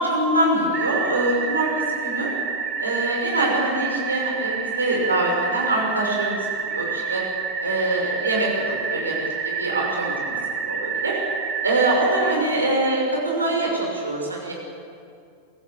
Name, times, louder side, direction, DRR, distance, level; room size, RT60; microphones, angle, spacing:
voice 1, 0.0-2.3 2.8-7.2 7.6-9.1 9.6-10.4 10.7-11.2 11.6-14.5, right 1 dB, 75° right, -1 dB, 5.8 m, -24 dB
sound 1, 0.7-12.3, right 5 dB, 30° right, 2.7 m, -28 dB
23.5 x 15.5 x 7.8 m, 2.4 s
figure-of-eight pair, 90°, 0 cm